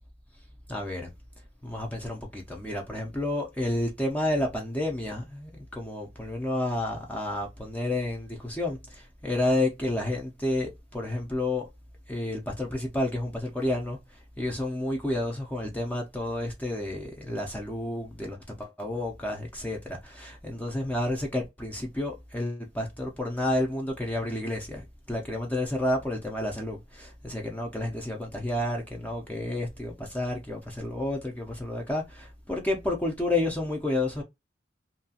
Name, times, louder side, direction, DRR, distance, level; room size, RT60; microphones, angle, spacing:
voice 1, 0.7-1.1 1.6-11.7 12.1-14.0 14.4-24.8 25.1-34.2, left 1 dB, 10° left, 0.5 m, -30 dB
2.8 x 2.4 x 2.7 m
head